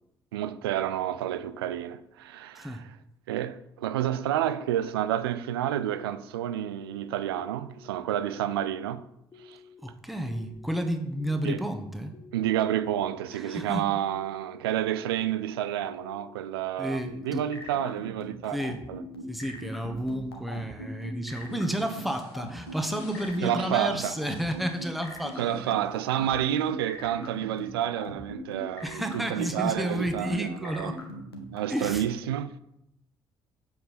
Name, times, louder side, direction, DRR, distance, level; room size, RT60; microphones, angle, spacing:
voice 1, 0.3-2.9 3.3-9.1 9.4-9.6 11.4-11.6 12.3-19.0 23.4-24.1 25.4-31.0 31.5-32.6, right 11 dB, 75° right, 0.4 m, -30 dB
sound 1, 4.6-5.1 5.6-6.1 6.5-7.0 7.4-7.9 8.4-8.9 9.3-9.8 10.3-10.7 11.2-11.7 12.1-12.6 13.1-13.6 14.0-14.5 14.9-15.4 15.9-16.4 16.8-17.3, left 6 dB, 30° left, 1.2 m, -52 dB
voice 2, 9.8-12.1 13.3-13.9 16.8-17.4 18.5-18.8 19.3-25.9 28.8-31.0 31.7-32.0, equal, ahead, 1.2 m, -31 dB
sound 2, 17.0-31.9, equal, 90° left, 0.9 m, -40 dB
sound 3, 21.3-26.7, left 4 dB, 70° left, 1.7 m, -53 dB
7.9 x 7.2 x 4.3 m
figure-of-eight pair, 45°, 13 cm